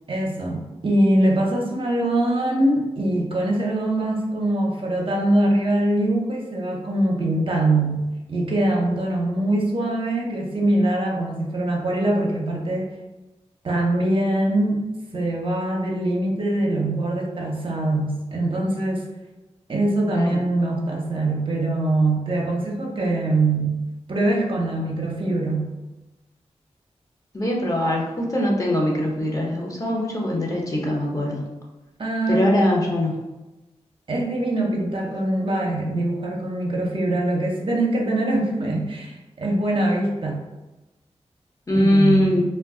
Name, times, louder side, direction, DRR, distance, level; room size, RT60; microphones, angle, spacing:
voice 1, 0.1-12.9 13.6-14.8 15.1-19.0 19.7-23.8 24.1-25.7 32.0-32.5 34.1-40.4 41.7-42.3, right 1 dB, 50° right, -1 dB, 0.6 m, -23 dB
voice 2, 20.1-20.4 27.3-31.4 32.3-33.2 41.7-42.4, left 1 dB, 30° left, -3 dB, 0.8 m, -21 dB
2.2 x 2.2 x 3.5 m, 1.1 s
cardioid pair, 50°, 12 cm